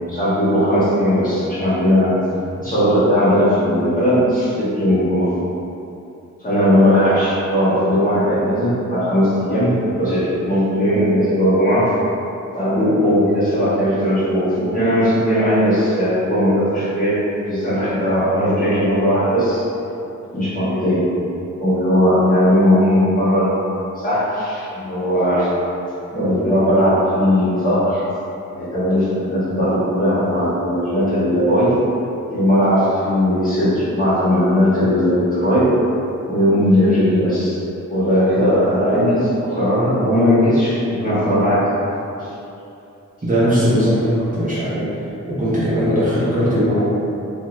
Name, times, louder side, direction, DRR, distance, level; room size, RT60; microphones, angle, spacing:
voice 1, 0.1-2.1 2.6-5.3 6.4-11.9 12.5-17.2 17.4-19.6 20.3-21.1 21.6-23.6 23.9-25.5 26.1-28.0 28.5-31.8 32.3-35.7 36.3-37.6 37.9-41.7 42.2-42.3, equal, 25° left, -12 dB, 1.1 m, -18 dB
voice 2, 43.2-44.9 45.3-46.9, equal, 25° right, -11 dB, 0.7 m, -18 dB
2.7 x 2.2 x 3.1 m, 2.7 s
wide cardioid pair, 105°, 30 cm